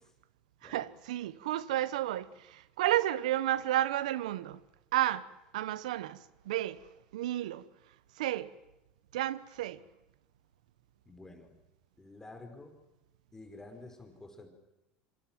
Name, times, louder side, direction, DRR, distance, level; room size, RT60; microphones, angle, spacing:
voice 1, 0.6-4.6 4.9-5.3 5.5-6.2 6.4-6.8 7.1-7.7 8.2-8.5 9.1-9.8, right 13 dB, 85° right, 1.1 m, -31 dB
voice 2, 11.0-11.5 12.0-12.8 13.3-14.5, left 2 dB, 15° left, 5.1 m, -50 dB
27.0 x 25.0 x 7.7 m
supercardioid pair, 100°, 4 cm